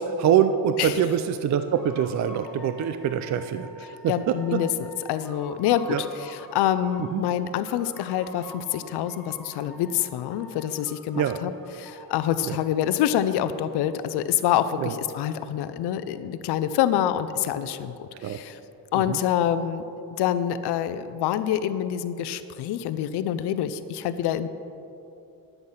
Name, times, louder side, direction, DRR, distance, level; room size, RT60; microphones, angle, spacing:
voice 1, 0.0-4.6 5.9-6.0 7.1-7.2 11.1-11.4 12.5-12.6 14.8-14.9 18.2-18.4 18.9-19.2, right 9 dB, 45° right, 9 dB, 0.5 m, -25 dB
sound 1, 1.6-7.2 7.6-10.0 10.3-13.2, left 1 dB, ahead, 2.5 m, -47 dB
voice 2, 4.1-18.6 18.9-19.8 20.2-24.5, left 10 dB, 85° left, 12 dB, 0.6 m, -26 dB
10.5 x 8.0 x 5.5 m, 2.7 s
cardioid pair, 130°, 39 cm